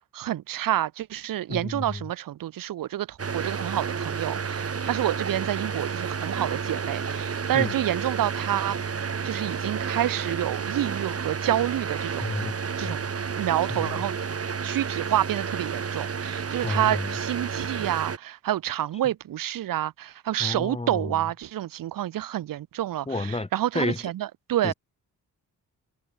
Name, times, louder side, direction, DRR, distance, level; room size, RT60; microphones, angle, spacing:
voice 1, 0.1-12.3 12.8-13.0 13.4-14.1 14.6-24.7, right 12 dB, 90° right, 1.3 m, -28 dB
voice 2, 1.5-2.0 7.5-7.7 12.2-12.5 12.8-13.0 13.7-14.0 16.6-17.1 20.4-21.2 23.1-23.5 23.7-24.0 24.6-24.7, left 2 dB, 20° left, 4.5 m, -30 dB
sound 1, 3.2-18.2, right 6 dB, 45° right, 4.8 m, -31 dB
cardioid pair, 95°, 33 cm